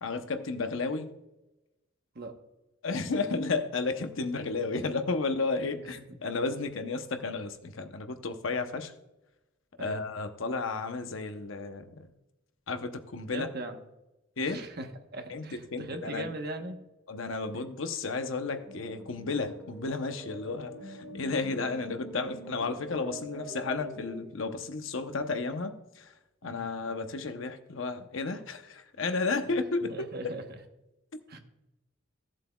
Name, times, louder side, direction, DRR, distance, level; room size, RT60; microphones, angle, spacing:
voice 1, 0.0-1.1 2.8-8.9 9.8-12.1 12.7-13.5 14.4-14.6 15.3-16.3 17.1-26.1 26.4-30.4 31.1-31.2, left 3 dB, 75° left, 8 dB, 0.8 m, -33 dB
voice 2, 13.3-13.8 14.4-14.9 15.1-16.8 17.5-17.6 26.4-26.7 29.8-30.4 31.3-31.4, right 2 dB, 50° right, 5 dB, 1.0 m, -39 dB
sound 1, 18.6-24.2, right 1 dB, 5° left, 2.7 m, -45 dB
15.0 x 7.5 x 2.3 m, 0.96 s
head